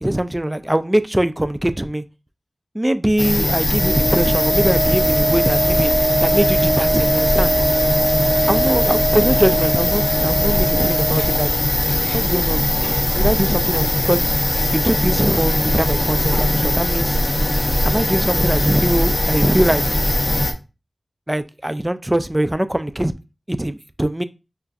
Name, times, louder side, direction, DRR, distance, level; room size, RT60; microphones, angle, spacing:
voice 1, 0.0-2.0 2.7-5.9 6.2-7.5 8.5-11.5 12.1-12.7 13.1-14.3 14.8-17.2 17.8-19.8 21.3-23.1 23.5-24.2, right 1 dB, 15° right, 0.4 m, -21 dB
sound 1, 3.2-20.5, left 1 dB, 45° left, 0.6 m, -20 dB
Wind instrument woodwind instrument, 3.7-11.5, right 3 dB, 50° right, 0.7 m, -22 dB
5.6 x 2.5 x 2.3 m
wide cardioid pair, 50°, 0 cm